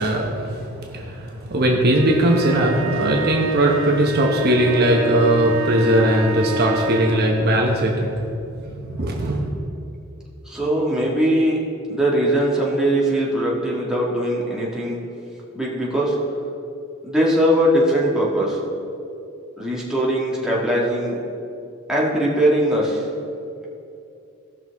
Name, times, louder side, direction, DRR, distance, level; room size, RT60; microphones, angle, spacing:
voice 1, 0.0-8.2 8.7-9.5, right 1 dB, 50° right, -1 dB, 1.1 m, -19 dB
sound 1, 1.9-7.3, right 1 dB, 90° right, 2.1 m, -28 dB
voice 2, 10.4-11.6 11.9-15.0 15.5-16.2 17.0-18.6 19.6-21.2 21.9-23.1, right 1 dB, 5° right, -6 dB, 1.8 m, -20 dB
17.0 x 6.1 x 3.6 m, 2.7 s
head